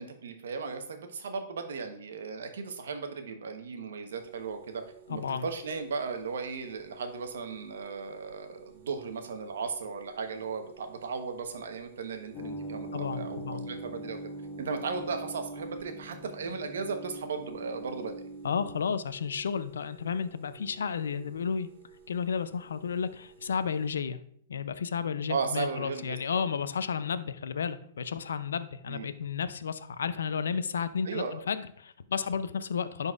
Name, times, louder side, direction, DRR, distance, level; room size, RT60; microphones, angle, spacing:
voice 1, 0.0-4.8 5.1-14.2 14.6-18.1 25.3-26.4 28.9-29.1 31.0-31.4, right 5 dB, 80° right, 6 dB, 0.9 m, -36 dB
sound 1, 4.1-23.9, right 6 dB, 55° right, 1.2 m, -55 dB
voice 2, 5.1-5.5 12.9-13.7 18.4-21.7 22.1-24.2 24.5-33.1, left 6 dB, 90° left, 13 dB, 0.4 m, -32 dB
sound 2, 12.3-18.9, right 1 dB, 35° left, 0.6 m, -41 dB
10.5 x 4.0 x 2.4 m, 0.63 s
hypercardioid pair, 130°, 0 cm